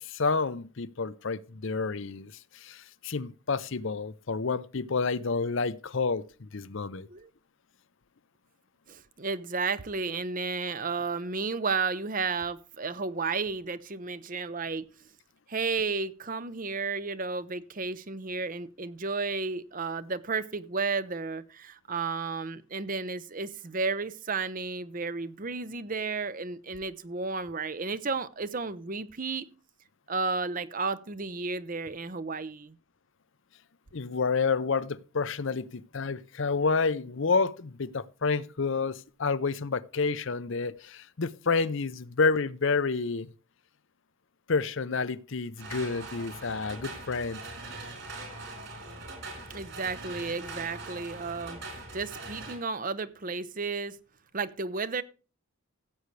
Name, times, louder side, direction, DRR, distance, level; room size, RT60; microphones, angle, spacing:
voice 1, 0.0-7.1 33.9-43.3 44.5-47.4, left 4 dB, 60° left, 0.6 m, -29 dB
voice 2, 8.9-14.9 15.5-29.5 30.1-32.8 49.5-51.6 51.9-54.0 54.3-55.0, right 4 dB, 40° right, 0.7 m, -32 dB
sound 1, 45.6-52.6, right 2 dB, 55° right, 4.8 m, -42 dB
16.0 x 8.0 x 3.2 m
head